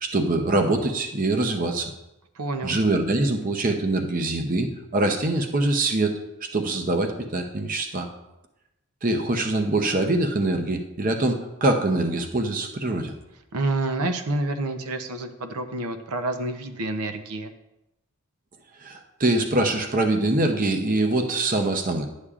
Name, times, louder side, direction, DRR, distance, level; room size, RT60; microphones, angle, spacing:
voice 1, 0.0-1.9 2.6-6.1 6.4-8.1 9.0-13.1 18.8-22.0, right 2 dB, 40° right, 5 dB, 0.7 m, -24 dB
voice 2, 2.3-2.8 13.5-17.5, right 2 dB, 90° right, 7 dB, 0.7 m, -28 dB
11.0 x 8.3 x 2.4 m, 0.93 s
head